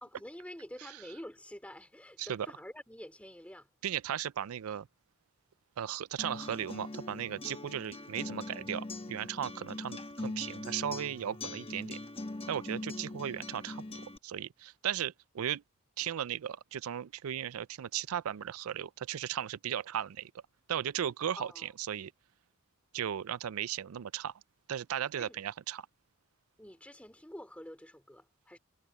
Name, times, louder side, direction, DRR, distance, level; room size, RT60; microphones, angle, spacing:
voice 1, 0.0-3.7 21.4-21.7 25.2-25.4 26.6-28.6, equal, 5° left, 2.6 m, -48 dB
voice 2, 3.8-4.9 5.8-12.0 12.5-13.8 14.2-15.6 16.0-20.3 20.7-22.1 22.9-24.3 24.7-25.9, right 9 dB, 90° right, 0.4 m, -36 dB
Acoustic guitar, 6.2-14.2, left 2 dB, 25° left, 1.1 m, -42 dB
head